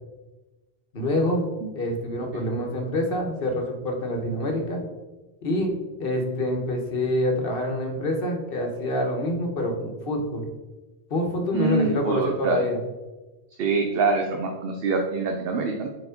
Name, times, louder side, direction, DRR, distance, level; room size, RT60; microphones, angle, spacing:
voice 1, 0.9-1.5 1.7-4.8 5.4-5.7 6.0-10.5 11.1-12.8, left 1 dB, 60° left, 2 dB, 1.3 m, -26 dB
voice 2, 11.5-12.7 13.6-15.9, right 3 dB, 65° right, 3 dB, 0.8 m, -25 dB
4.6 x 4.3 x 5.1 m, 1.1 s
omnidirectional pair, 1.1 m